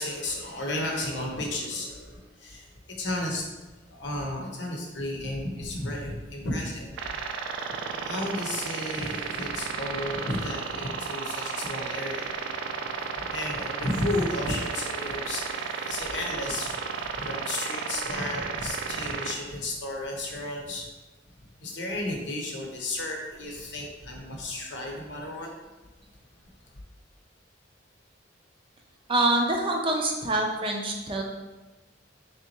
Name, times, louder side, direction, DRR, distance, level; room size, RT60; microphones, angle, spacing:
voice 1, 0.0-2.7 3.0-3.4 3.9-6.9 8.0-12.4 13.2-20.9 21.6-25.5, left 1 dB, 70° left, 0 dB, 0.8 m, -33 dB
sound 1, 7.0-19.3, right 5 dB, 90° right, 0.4 m, -33 dB
voice 2, 29.1-31.2, right 2 dB, 30° right, 1 dB, 0.5 m, -25 dB
4.1 x 3.4 x 2.9 m, 1.1 s
head